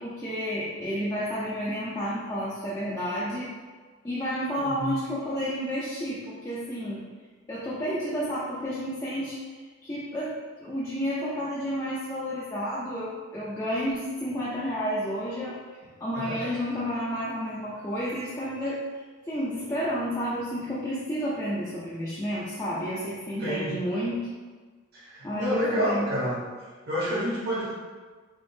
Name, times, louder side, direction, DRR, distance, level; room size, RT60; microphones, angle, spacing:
voice 1, 0.0-3.5 4.0-7.0 7.5-9.4 9.8-10.3 10.6-15.6 16.0-18.8 19.3-24.3 25.2-26.1, equal, 15° left, -9 dB, 0.5 m, -31 dB
voice 2, 4.6-5.0 16.1-16.5 23.4-23.8 24.9-26.4 26.9-27.7, equal, 50° right, -6 dB, 1.0 m, -29 dB
3.6 x 3.5 x 2.7 m, 1.4 s
head